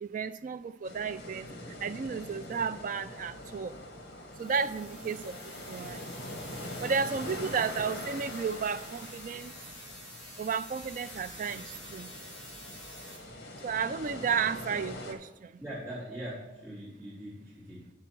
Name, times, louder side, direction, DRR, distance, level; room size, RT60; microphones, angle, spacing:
voice 1, 0.0-1.5 1.8-3.7 4.4-6.0 6.8-9.5 10.4-11.6 11.9-12.1 13.6-15.5, right 6 dB, 45° right, 14 dB, 0.3 m, -33 dB
sound 1, 0.8-15.1, left 1 dB, 55° left, 1.4 m, -43 dB
sound 2, 4.3-13.2, equal, ahead, 3.3 m, -48 dB
voice 2, 15.6-17.9, right 1 dB, 15° right, -11 dB, 3.1 m, -42 dB
9.3 x 7.5 x 4.5 m, 1.0 s
head